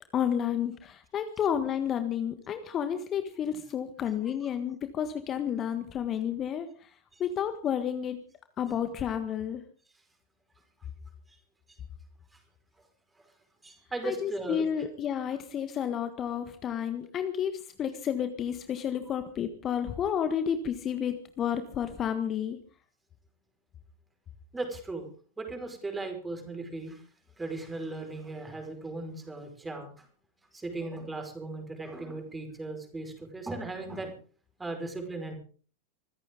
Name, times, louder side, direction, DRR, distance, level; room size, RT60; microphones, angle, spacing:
voice 1, 0.1-6.7 7.2-8.2 8.6-9.6 14.0-22.6, left 8 dB, 30° left, 9 dB, 1.5 m, -31 dB
voice 2, 13.6-14.7 24.5-25.1 25.4-27.0 27.4-30.1 30.5-34.1 34.6-35.3, right 2 dB, 10° right, 4 dB, 5.2 m, -37 dB
24.5 x 15.0 x 3.8 m, 0.42 s
figure-of-eight pair, 90°, 0 cm